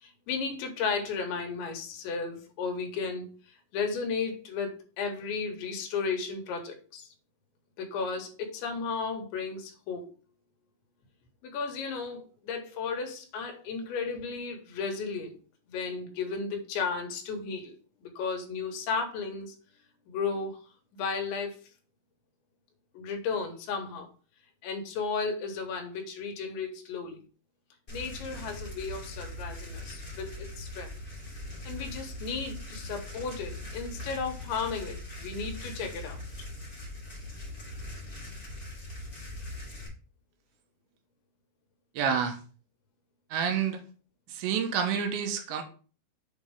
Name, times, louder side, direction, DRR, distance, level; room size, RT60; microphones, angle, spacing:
voice 1, 0.0-7.1 7.8-10.1 11.4-15.4 15.7-17.7 18.0-19.6 20.1-20.6 20.9-21.6 23.0-24.1 24.6-27.2 27.9-31.0 31.7-36.2, left 5 dB, 85° left, 3 dB, 3.6 m, -34 dB
sound 1, 27.9-39.9, left 1 dB, 20° left, 1.4 m, -41 dB
voice 2, 41.9-42.4 43.3-43.8 44.3-45.6, right 7 dB, 85° right, 5 dB, 3.3 m, -28 dB
7.8 x 5.2 x 3.5 m, 0.38 s
omnidirectional pair, 5.1 m